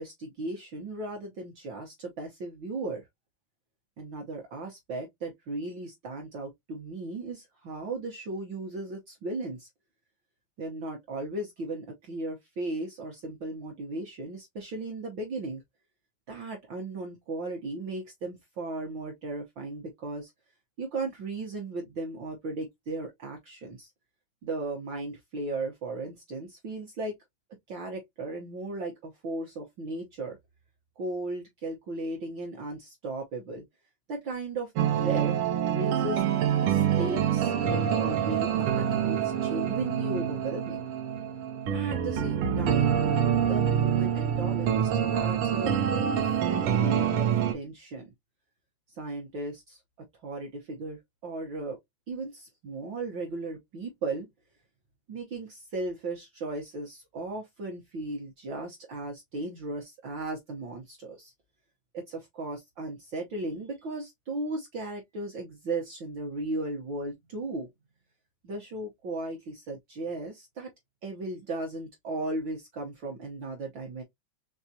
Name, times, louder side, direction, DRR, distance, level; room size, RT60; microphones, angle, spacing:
voice 1, 0.0-3.0 4.0-9.7 10.6-15.6 16.3-20.3 20.8-23.9 24.4-27.1 27.7-30.4 31.0-33.6 34.1-35.3 35.7-36.2 36.5-40.9 41.7-43.0 43.4-45.7 46.2-48.1 48.9-49.8 50.2-51.8 52.1-54.3 55.1-61.3 61.9-67.7 68.4-70.7 71.0-74.0, right 2 dB, 65° right, 1.2 m, -36 dB
sound 1, 34.8-47.5, right 9 dB, 80° right, 1.2 m, -26 dB
4.6 x 3.6 x 2.7 m
omnidirectional pair, 3.4 m